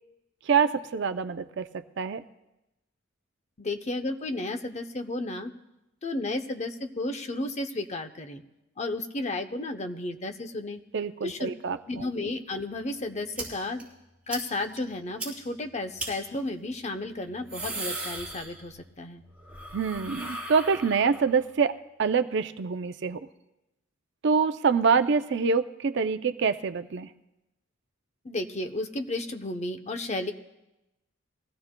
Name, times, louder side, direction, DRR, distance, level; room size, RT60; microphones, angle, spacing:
voice 1, 0.5-2.2 10.9-12.0 19.7-23.3 24.2-27.1, right 5 dB, 60° right, 10 dB, 0.5 m, -26 dB
voice 2, 3.6-5.5 6.0-8.4 8.8-10.8 11.2-11.5 11.9-13.8 14.3-19.2 28.2-30.3, left 2 dB, 35° left, 7 dB, 0.8 m, -33 dB
sound 1, 13.4-13.5 13.8-13.9 14.3-14.4 14.8-14.9 15.2-15.3 16.0-16.1 17.2-18.9 19.2-21.3, right 2 dB, 5° right, 4.2 m, -37 dB
21.5 x 16.0 x 2.2 m, 0.95 s
head